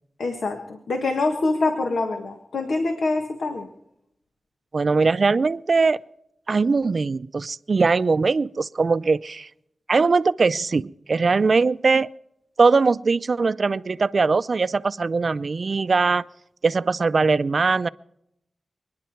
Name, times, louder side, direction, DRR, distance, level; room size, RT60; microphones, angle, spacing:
voice 1, 0.2-0.6 0.9-3.7, left 3 dB, 85° left, 4 dB, 1.6 m, -25 dB
voice 2, 4.7-6.0 6.5-9.5 9.9-12.1 12.6-16.2 16.6-17.9, right 4 dB, 60° right, 16 dB, 0.5 m, -21 dB
28.5 x 10.5 x 4.6 m, 0.80 s
cardioid pair, 60°, 0 cm